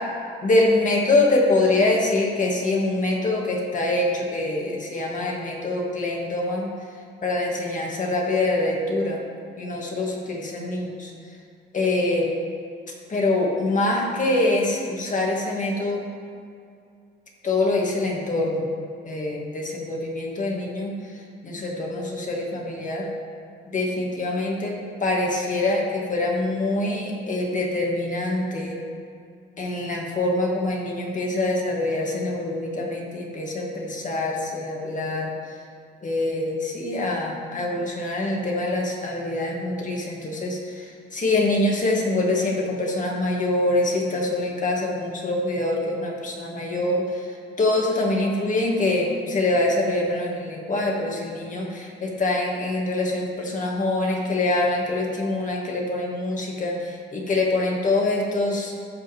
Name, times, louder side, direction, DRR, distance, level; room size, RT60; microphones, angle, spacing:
voice 1, 0.4-6.8 7.2-9.2 9.6-11.1 11.7-12.3 13.1-16.0 17.4-18.7 19.0-21.1 21.4-23.1 23.7-24.8 25.0-28.8 29.6-35.3 36.0-58.7, left 2 dB, 40° left, -1 dB, 2.1 m, -24 dB
15.0 x 5.8 x 3.6 m, 2.3 s
cardioid pair, 90°, 20 cm